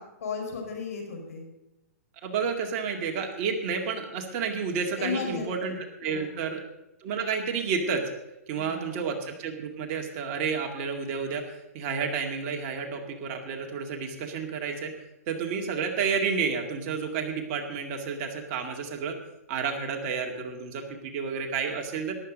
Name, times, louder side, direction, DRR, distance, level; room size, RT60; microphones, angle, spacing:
voice 1, 0.0-1.5 5.0-5.5 6.0-6.2 8.6-9.1, left 5 dB, 70° left, 3 dB, 5.1 m, -35 dB
voice 2, 2.2-5.7 6.0-6.6 7.0-8.1 8.5-14.9 15.3-19.2 19.5-22.2, right 5 dB, 35° right, 3 dB, 2.1 m, -30 dB
14.0 x 11.5 x 5.2 m, 0.94 s
hypercardioid pair, 145°, 8 cm